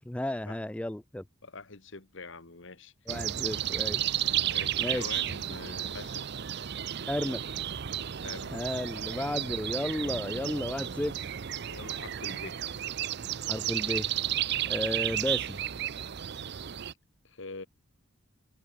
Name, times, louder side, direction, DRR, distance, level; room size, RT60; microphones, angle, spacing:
voice 1, 0.0-1.2 3.1-4.0 4.8-5.1 7.1-7.4 8.5-11.1 13.5-14.1 14.7-15.6, left 1 dB, 5° left, 0.3 m, -33 dB
voice 2, 1.4-3.2 4.5-6.3 8.2-8.9 11.7-12.6 17.2-17.7, left 3 dB, 60° left, 1.5 m, -44 dB
sound 1, 3.1-16.9, right 11 dB, 50° right, 0.5 m, -33 dB
head